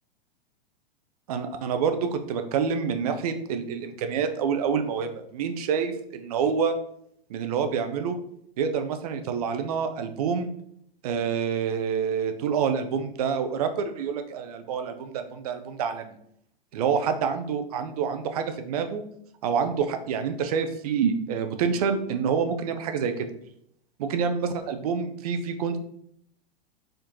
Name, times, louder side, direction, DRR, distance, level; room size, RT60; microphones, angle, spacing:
voice 1, 1.3-6.7 7.3-8.2 8.6-10.5 11.0-16.2 16.7-19.0 19.4-23.3 24.0-25.8, right 6 dB, 40° right, 7 dB, 0.5 m, -27 dB
4.3 x 3.8 x 2.9 m, 0.70 s
figure-of-eight pair, 100°, 30 cm